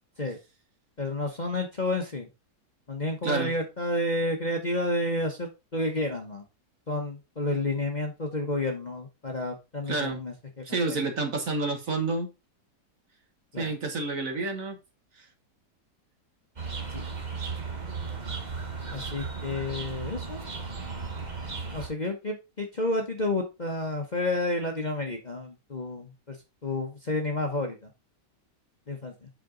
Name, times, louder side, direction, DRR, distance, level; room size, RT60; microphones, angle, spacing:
voice 1, 1.0-2.3 2.9-6.4 6.9-11.0 13.5-13.7 16.9-17.0 18.9-20.4 21.7-26.4 26.6-27.9 28.9-29.3, left 2 dB, 30° left, 1.0 m, -30 dB
voice 2, 9.9-10.2 10.6-12.3 13.6-14.8 15.2-15.3, right 3 dB, 50° right, 1.7 m, -29 dB
sound 1, 16.6-21.9, right 4 dB, 25° right, 1.3 m, -35 dB
8.5 x 4.8 x 3.8 m
omnidirectional pair, 1.9 m